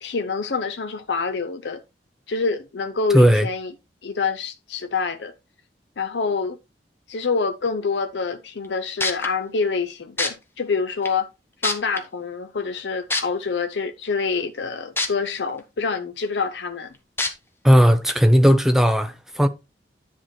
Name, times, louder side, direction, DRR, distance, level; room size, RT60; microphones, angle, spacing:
voice 1, 0.0-1.8 2.3-3.7 4.0-5.3 6.0-6.6 7.1-11.3 11.6-16.9, left 4 dB, 85° left, 0.6 m, -26 dB
voice 2, 3.1-3.5 17.6-19.5, equal, ahead, 0.7 m, -16 dB
sound 1, 8.6-8.7 9.0-9.3 10.2-10.3 11.1-11.2 11.6-12.0 13.1-13.2 15.0-15.1 15.6-15.7 17.2-17.3 18.1-18.2, left 2 dB, 15° left, 1.1 m, -23 dB
10.5 x 4.5 x 4.3 m
head